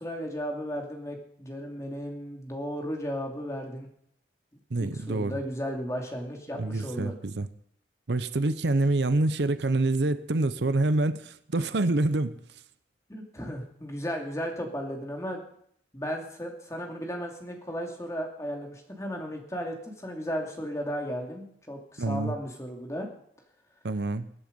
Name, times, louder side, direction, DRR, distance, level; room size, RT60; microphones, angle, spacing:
voice 1, 0.0-3.9 4.8-7.2 13.1-15.4 15.9-23.1, equal, 15° left, 2.5 m, -35 dB
voice 2, 4.7-5.4 6.6-7.5 8.1-12.3 22.0-22.4 23.8-24.3, right 2 dB, 75° right, 0.7 m, -26 dB
22.0 x 8.0 x 5.3 m
head